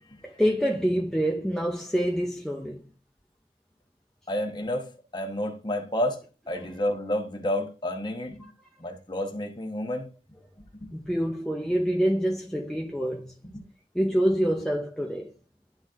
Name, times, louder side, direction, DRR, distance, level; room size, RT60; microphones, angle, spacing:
voice 1, 0.2-2.9 8.4-8.5 10.9-13.3 13.9-15.3, equal, 5° left, 0.5 m, -26 dB
voice 2, 4.3-8.4 8.8-10.1 10.8-10.9 13.4-13.6, left 1 dB, 25° left, 1.1 m, -30 dB
11.5 x 4.1 x 2.5 m
head